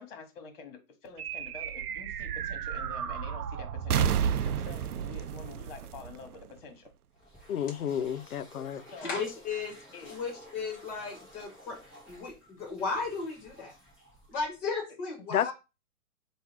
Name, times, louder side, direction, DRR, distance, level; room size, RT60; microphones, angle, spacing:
voice 1, 0.0-4.2 4.4-6.9 8.9-9.2 9.9-10.1 15.2-15.3, left 4 dB, 40° left, 1.4 m, -47 dB
sound 1, 1.2-6.9, right 8 dB, 85° right, 0.6 m, -32 dB
sound 2, 7.1-14.8, equal, ahead, 0.8 m, -54 dB
voice 2, 7.5-8.8 15.3-15.5, left 9 dB, 75° left, 0.6 m, -31 dB
voice 3, 9.0-9.8 10.1-11.8 12.1-13.7 14.3-15.5, left 4 dB, 20° left, 1.6 m, -35 dB
3.6 x 2.5 x 4.6 m
hypercardioid pair, 150°, 44 cm